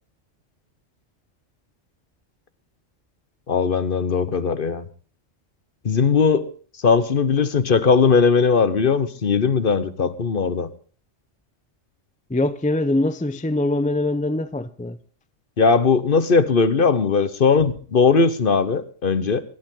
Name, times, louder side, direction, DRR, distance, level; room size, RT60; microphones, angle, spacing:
voice 1, 3.5-4.8 5.8-6.5 6.8-10.7 15.6-19.4, left 5 dB, 50° left, 1.1 m, -19 dB
voice 2, 12.3-15.0, left 2 dB, 10° left, 0.4 m, -23 dB
25.0 x 12.0 x 3.8 m
omnidirectional pair, 1.3 m